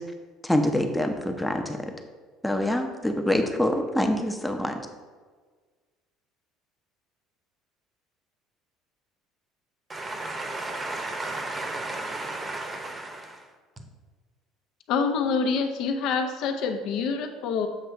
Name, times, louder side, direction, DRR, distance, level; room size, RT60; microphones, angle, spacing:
voice 1, 0.4-1.9 2.4-4.8, left 1 dB, 5° left, 4 dB, 0.7 m, -25 dB
voice 2, 9.9-13.4, right 2 dB, 20° right, 5 dB, 1.0 m, -33 dB
voice 3, 14.9-17.7, left 5 dB, 65° left, 6 dB, 0.8 m, -26 dB
7.6 x 3.2 x 5.7 m, 1.4 s
cardioid pair, 120°, 0 cm